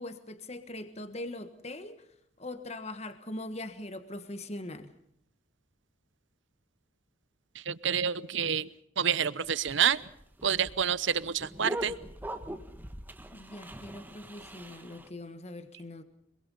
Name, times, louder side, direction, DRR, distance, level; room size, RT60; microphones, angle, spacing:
voice 1, 0.0-2.1 2.4-4.9 13.3-16.0, left 1 dB, 30° left, 9 dB, 1.5 m, -41 dB
voice 2, 7.7-8.7 9.0-10.0 10.4-11.9, right 8 dB, 70° right, 18 dB, 0.9 m, -28 dB
sound 1, 9.4-15.1, equal, 10° right, 1.5 m, -41 dB
26.0 x 23.0 x 5.5 m, 0.73 s
head